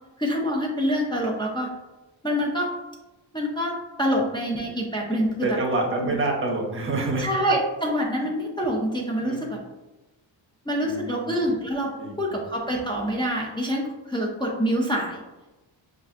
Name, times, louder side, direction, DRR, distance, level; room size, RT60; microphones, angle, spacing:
voice 1, 0.2-1.7 2.2-2.7 3.3-5.6 6.0-6.2 7.2-9.6 10.7-15.2, equal, 10° left, -3 dB, 0.3 m, -26 dB
voice 2, 5.4-7.3 8.2-8.3 9.2-9.4 10.8-11.3 12.0-12.4, right 2 dB, 25° right, -1 dB, 0.7 m, -27 dB
5.4 x 2.4 x 2.4 m, 1.1 s
wide cardioid pair, 175°, 46 cm